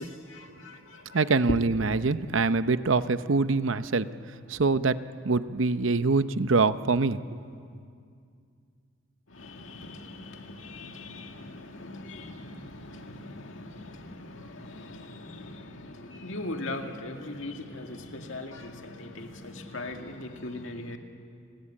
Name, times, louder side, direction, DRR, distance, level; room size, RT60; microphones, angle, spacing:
voice 1, 0.0-1.6 9.3-21.0, left 2 dB, 70° left, 4 dB, 2.1 m, -39 dB
voice 2, 1.1-4.1 4.5-7.2, right 3 dB, 70° right, 13 dB, 0.8 m, -24 dB
29.5 x 20.5 x 8.6 m, 2.3 s
head